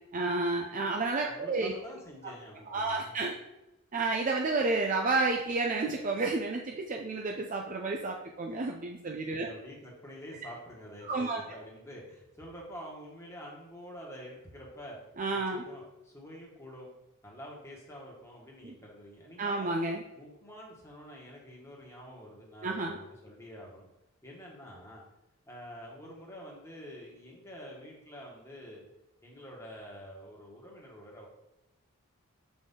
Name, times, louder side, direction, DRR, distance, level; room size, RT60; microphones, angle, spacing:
voice 1, 0.1-1.7 2.7-3.4 3.9-9.5 11.1-11.4 15.2-15.6 18.6-18.7 19.4-20.0 22.6-23.0, right 3 dB, 35° right, 1 dB, 0.5 m, -31 dB
voice 2, 1.3-3.2 9.3-15.0 15.3-16.9 17.2-19.7 20.1-23.8 24.2-25.0 25.5-28.8 29.2-31.3, equal, 15° left, -3 dB, 1.4 m, -47 dB
6.8 x 4.1 x 3.7 m, 0.94 s
head